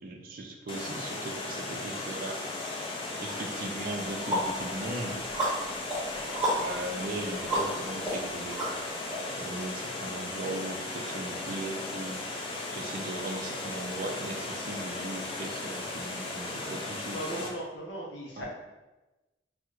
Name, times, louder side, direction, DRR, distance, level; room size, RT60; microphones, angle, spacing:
voice 1, 0.0-2.4 3.2-5.2 6.6-8.7 9.4-12.2 12.7-17.5 18.4-18.5, right 2 dB, 50° right, 2 dB, 0.4 m, -38 dB
Water, 0.7-17.5, left 2 dB, 25° left, 0.3 m, -36 dB
sound 1, 3.3-3.4 3.8-9.2, right 1 dB, 5° right, 0.8 m, -34 dB
voice 2, 17.1-18.5, right 1 dB, 75° left, -3 dB, 0.6 m, -38 dB
4.4 x 2.1 x 2.3 m, 1.1 s
head